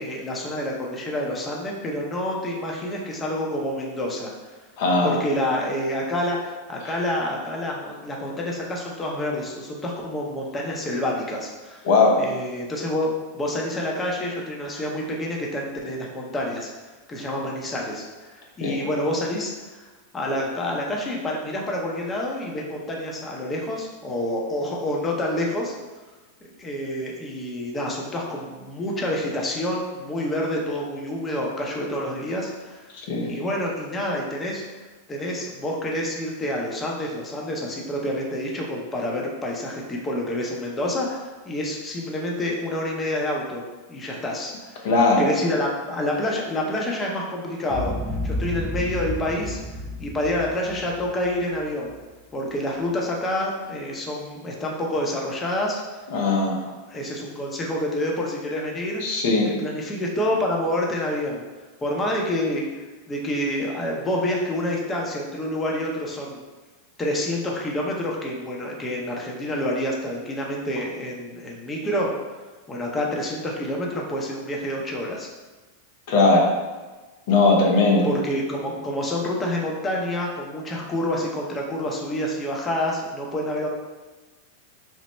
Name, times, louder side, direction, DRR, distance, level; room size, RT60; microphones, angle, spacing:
voice 1, 0.0-4.6 5.0-11.8 12.2-16.7 17.1-19.9 20.1-25.7 26.6-32.8 33.3-34.8 35.1-43.6 43.9-44.9 45.2-47.9 48.2-49.6 50.0-51.9 52.3-56.1 56.6-59.0 59.5-61.4 61.8-62.7 63.1-66.4 67.0-72.1 72.7-75.3 78.0-83.7, left 1 dB, 20° left, -2 dB, 0.7 m, -28 dB
voice 2, 4.8-5.2 11.8-12.2 18.6-18.8 33.1-33.3 44.8-45.2 56.1-56.6 59.0-59.5 76.1-76.5 77.3-78.1, left 3 dB, 60° left, -1 dB, 0.6 m, -19 dB
Boom, 47.7-52.0, left 1 dB, 20° right, 0.4 m, -31 dB
3.2 x 2.0 x 4.1 m, 1.2 s
hypercardioid pair, 100°, 0 cm